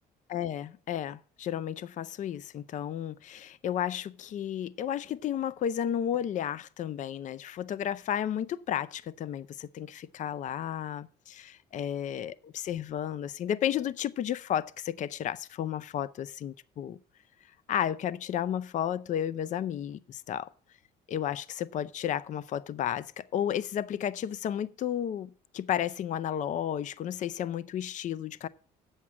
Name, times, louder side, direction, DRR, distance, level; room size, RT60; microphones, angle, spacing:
voice 1, 0.3-17.0 17.7-20.5 21.1-28.5, left 10 dB, 45° left, 0.5 m, -33 dB
8.5 x 7.3 x 6.1 m
cardioid pair, 110°, 17 cm